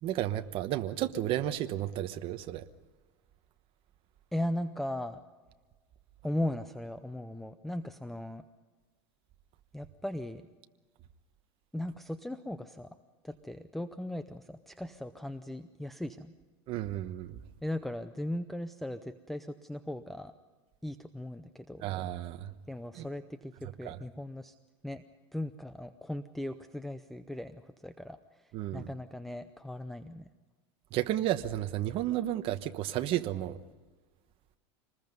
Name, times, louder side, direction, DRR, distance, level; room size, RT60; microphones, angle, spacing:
voice 1, 0.0-2.6 16.7-17.4 21.8-22.5 22.9-23.1 23.8-24.0 28.5-28.9 30.9-33.6, right 13 dB, 40° right, 1.1 m, -32 dB
voice 2, 4.3-5.2 6.2-8.4 9.7-10.4 11.7-12.9 13.2-16.3 17.6-20.3 20.8-21.9 22.7-24.5 24.8-25.0 25.3-30.3, left 1 dB, ahead, 0.6 m, -38 dB
26.0 x 20.5 x 5.4 m
supercardioid pair, 145°, 14 cm